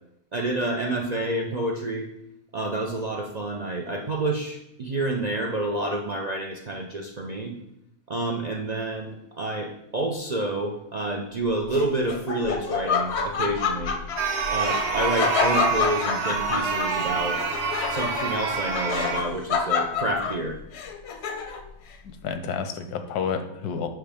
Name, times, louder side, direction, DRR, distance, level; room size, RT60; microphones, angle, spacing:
voice 1, 0.3-2.1 2.5-7.6 8.1-13.9 14.5-17.4 17.9-20.6, right 2 dB, 80° right, 1 dB, 0.3 m, -28 dB
Laughter, 11.7-21.7, left 6 dB, 60° left, 0.7 m, -28 dB
sound 1, 14.2-19.2, right 5 dB, 50° right, 1.1 m, -27 dB
voice 2, 22.0-23.9, left 6 dB, 90° left, 8 dB, 1.2 m, -30 dB
7.7 x 5.7 x 3.4 m, 0.82 s
omnidirectional pair, 1.6 m